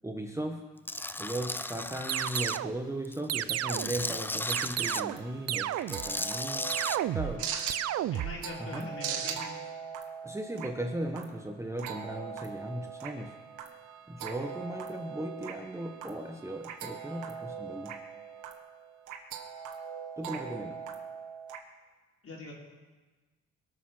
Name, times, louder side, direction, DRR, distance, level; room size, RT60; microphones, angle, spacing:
voice 1, 0.0-0.6 1.2-6.7 7.1-7.5 8.6-8.9 10.2-13.3 14.1-18.0 20.2-20.8, right 1 dB, 10° right, 3 dB, 1.2 m, -37 dB
Tools, 0.9-2.6 3.0-5.0 5.8-7.0, left 2 dB, 5° left, 0.5 m, -35 dB
sound 1, 2.1-2.8 3.3-4.0 4.5-5.2 5.5-6.1 6.7-7.4 7.7-8.4, right 13 dB, 55° right, 0.5 m, -32 dB
sound 2, 4.8-21.6, right 7 dB, 85° right, 1.6 m, -41 dB
voice 2, 8.1-9.6 22.2-22.5, left 2 dB, 50° left, -2 dB, 4.5 m, -43 dB
22.0 x 7.4 x 6.1 m, 1.3 s
cardioid pair, 90°, 30 cm